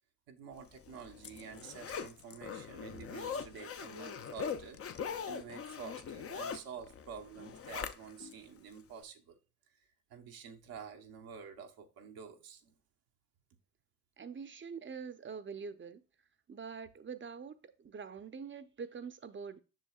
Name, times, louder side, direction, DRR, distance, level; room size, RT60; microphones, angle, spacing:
voice 1, 0.3-9.4 10.1-12.7, right 6 dB, 80° right, 0.9 m, -49 dB
Zipper (clothing), 0.7-8.3 8.8-8.9, left 6 dB, 40° left, 0.6 m, -42 dB
voice 2, 14.2-16.0 16.5-19.6, right 6 dB, 35° right, 0.6 m, -45 dB
7.5 x 6.2 x 2.3 m
supercardioid pair, 55°, 35 cm